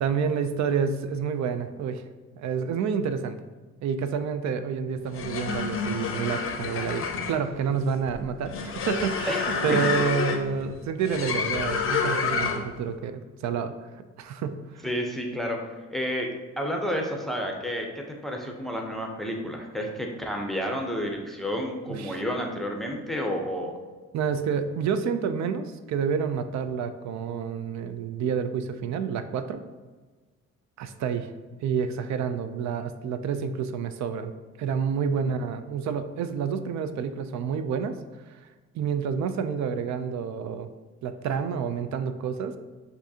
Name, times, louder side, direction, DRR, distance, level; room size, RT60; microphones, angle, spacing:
voice 1, 0.0-2.0 2.4-3.4 3.8-13.7 14.2-14.9 21.9-22.2 24.1-29.6 30.8-31.3 31.6-34.3 34.6-38.0 38.3-38.4 38.7-40.7 41.0-42.6, right 6 dB, 65° right, 10 dB, 0.4 m, -29 dB
sound 1, 5.0-12.8, left 5 dB, 45° left, 0.6 m, -29 dB
voice 2, 9.3-9.8 14.8-15.6 15.9-16.3 16.6-23.7 35.2-35.3, equal, ahead, 1 dB, 0.6 m, -30 dB
7.1 x 2.6 x 2.7 m, 1.3 s
cardioid pair, 90°, 30 cm